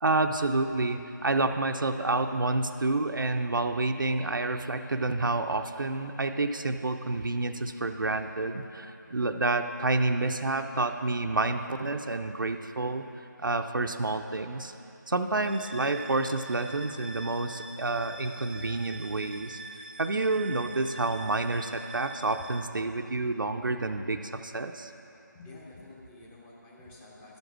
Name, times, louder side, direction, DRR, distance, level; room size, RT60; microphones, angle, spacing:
voice 1, 0.0-13.1 13.4-14.7 15.1-19.6 20.0-24.9, right 2 dB, 85° right, 6 dB, 0.6 m, -29 dB
sound 1, 15.4-22.6, right 3 dB, 25° right, 0.4 m, -45 dB
voice 2, 25.3-27.4, left 2 dB, 10° left, -4 dB, 0.8 m, -49 dB
12.0 x 5.3 x 6.1 m, 2.7 s
figure-of-eight pair, 160°, 11 cm